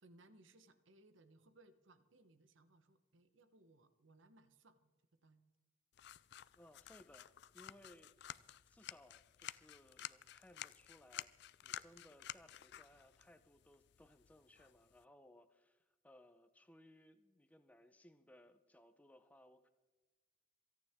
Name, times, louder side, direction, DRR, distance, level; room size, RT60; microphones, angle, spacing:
voice 1, 0.0-4.9 5.2-5.4, right 2 dB, 75° right, 10 dB, 1.1 m, -66 dB
sound 1, 5.9-15.0, left 12 dB, 55° left, 0.4 m, -53 dB
voice 2, 6.5-8.3 8.7-11.3 11.6-19.7, left 1 dB, 5° left, 8 dB, 0.7 m, -64 dB
27.5 x 9.5 x 3.6 m, 1.2 s
head